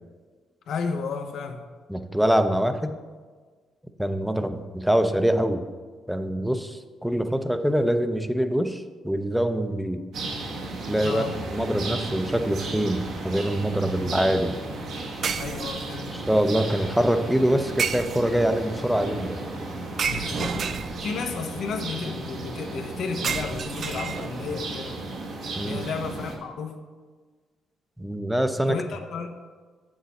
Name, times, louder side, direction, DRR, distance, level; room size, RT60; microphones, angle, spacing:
voice 1, 0.7-1.6 11.0-11.4 15.4-16.1 20.1-20.7 21.0-25.0 25.6-26.8 28.7-29.3, left 5 dB, 70° left, 5 dB, 0.7 m, -32 dB
voice 2, 1.9-2.9 4.0-5.6 6.1-10.0 10.9-14.5 16.1-19.4 25.6-25.9 28.0-28.8, equal, ahead, 9 dB, 0.6 m, -24 dB
sound 1, 10.1-26.4, right 2 dB, 70° right, 1.3 m, -34 dB
sound 2, 13.2-13.4 15.2-16.1 17.8-18.5 20.0-21.3 23.2-24.6, right 7 dB, 55° right, 0.3 m, -31 dB
sound 3, 16.5-26.2, left 1 dB, 15° left, 1.0 m, -44 dB
7.7 x 6.4 x 4.1 m, 1.5 s
cardioid pair, 90°, 0 cm